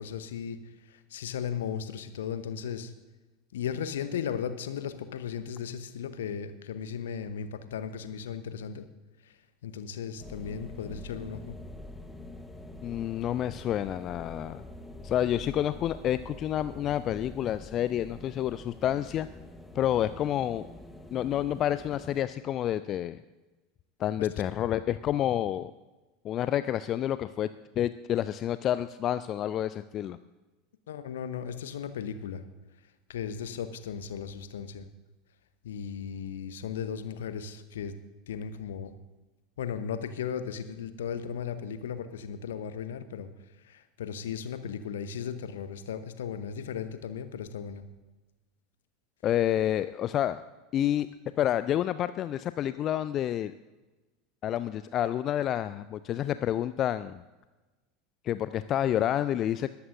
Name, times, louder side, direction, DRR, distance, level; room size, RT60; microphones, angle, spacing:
voice 1, 0.0-2.9 3.5-8.9 9.2-11.6 24.2-24.3 30.9-32.4 33.1-34.9 35.6-37.9 38.3-38.9 39.6-43.3 43.6-47.8, left 7 dB, 65° left, 11 dB, 1.0 m, -36 dB
sound 1, 10.2-22.2, left 1 dB, 10° left, 1.2 m, -46 dB
voice 2, 12.8-14.6 15.0-19.3 19.7-20.6 21.1-23.2 24.0-25.7 26.2-27.5 27.8-30.2 49.2-50.4 50.7-51.1 51.4-53.5 54.4-57.2 58.2-59.7, left 11 dB, 35° left, 14 dB, 0.4 m, -29 dB
21.5 x 12.5 x 2.6 m, 1.1 s
figure-of-eight pair, 80°, 0 cm